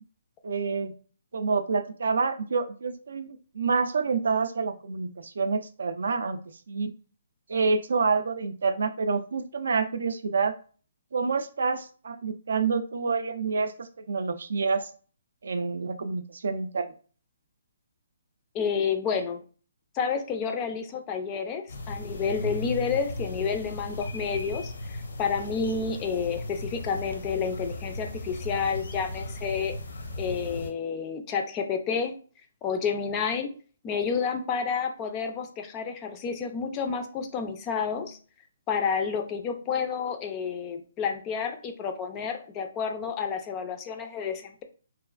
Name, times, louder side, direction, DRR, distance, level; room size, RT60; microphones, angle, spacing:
voice 1, 0.4-0.9 1.3-6.9 7.5-10.5 11.1-14.9 15.4-16.9, right 4 dB, 70° right, 10 dB, 0.4 m, -28 dB
voice 2, 18.5-19.4 19.9-29.8 30.2-32.2 32.6-33.5 33.8-38.2 38.7-44.6, left 6 dB, 20° left, 6 dB, 0.3 m, -30 dB
sound 1, 21.7-30.7, left 1 dB, 70° left, 0.6 m, -36 dB
2.9 x 2.4 x 2.3 m, 0.39 s
hypercardioid pair, 160°, 0 cm